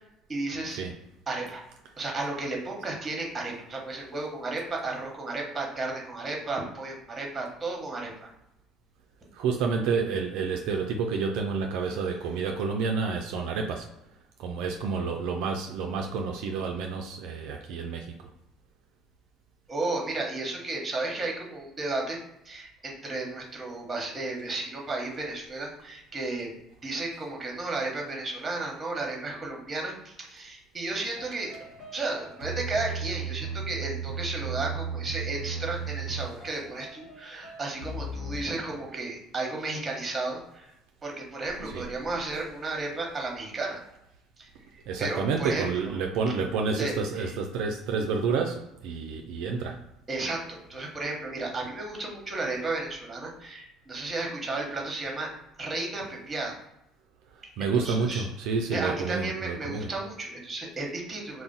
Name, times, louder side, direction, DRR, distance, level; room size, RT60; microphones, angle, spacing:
voice 1, 0.3-0.8 1.3-1.6 2.0-8.3 19.7-22.2 22.4-26.5 26.8-31.5 31.9-40.7 41.0-43.8 44.4-45.9 46.8-47.3 50.1-55.3 55.6-56.6 57.8-58.3 58.7-61.4, right 2 dB, 25° right, 0 dB, 1.0 m, -33 dB
voice 2, 9.3-13.9 14.4-18.1 41.6-41.8 44.9-49.8 57.3-59.9, right 5 dB, 75° right, 2 dB, 0.3 m, -29 dB
sound 1, 31.2-38.4, right 5 dB, 55° left, 1.0 m, -36 dB
2.4 x 2.0 x 3.9 m, 0.85 s
supercardioid pair, 80°, 0 cm